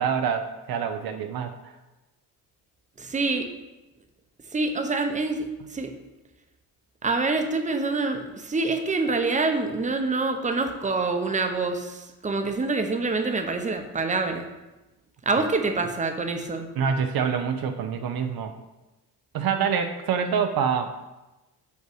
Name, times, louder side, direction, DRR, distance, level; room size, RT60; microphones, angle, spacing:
voice 1, 0.0-1.7 16.8-18.5 19.3-20.9, right 7 dB, 60° right, 6 dB, 0.7 m, -26 dB
voice 2, 3.0-3.5 4.5-5.5 5.7-5.9 7.0-14.5 15.3-16.7, right 3 dB, 20° right, 5 dB, 0.8 m, -26 dB
5.7 x 4.5 x 6.1 m, 1.1 s
cardioid pair, 90°, 41 cm